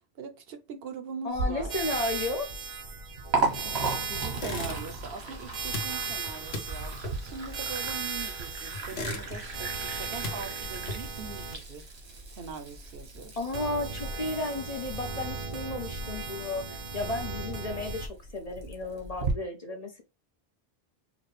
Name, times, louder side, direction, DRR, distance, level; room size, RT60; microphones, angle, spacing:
voice 1, 0.1-1.7 4.1-11.8 12.3-13.4, right 5 dB, 70° right, 0.9 m, -42 dB
voice 2, 1.2-2.5 13.4-20.0, left 2 dB, 45° left, 0.7 m, -33 dB
Liquid, 1.3-19.3, right 3 dB, 85° right, 1.5 m, -37 dB
sound 1, 1.7-11.5 13.5-18.1, right 5 dB, 40° right, 0.6 m, -37 dB
sound 2, 4.3-5.1 5.4-8.3 8.7-9.7 10.0-11.3, left 2 dB, 80° left, 1.1 m, -38 dB
5.1 x 2.2 x 3.2 m
omnidirectional pair, 1.0 m